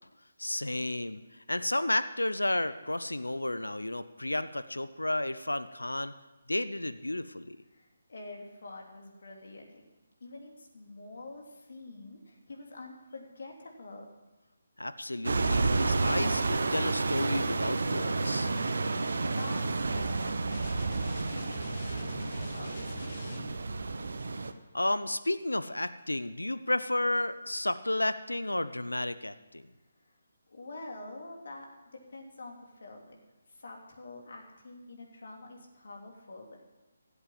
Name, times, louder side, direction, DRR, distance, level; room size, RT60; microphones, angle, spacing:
voice 1, 0.4-6.1 6.5-7.6 14.8-18.5 24.7-29.6, left 1 dB, 90° left, 13 dB, 0.7 m, -32 dB
voice 2, 7.7-9.8 10.2-14.1 19.2-21.0 21.2-22.7 23.0-23.5 30.5-31.7 32.1-33.2 33.5-36.7, left 2 dB, 65° left, 1 dB, 3.1 m, -46 dB
sound 1, 15.2-24.5, right 3 dB, 65° right, 1.0 m, -30 dB
sound 2, 20.5-23.7, left 4 dB, 45° left, 1.5 m, -46 dB
16.0 x 8.1 x 7.5 m, 1.1 s
figure-of-eight pair, 150°, 0 cm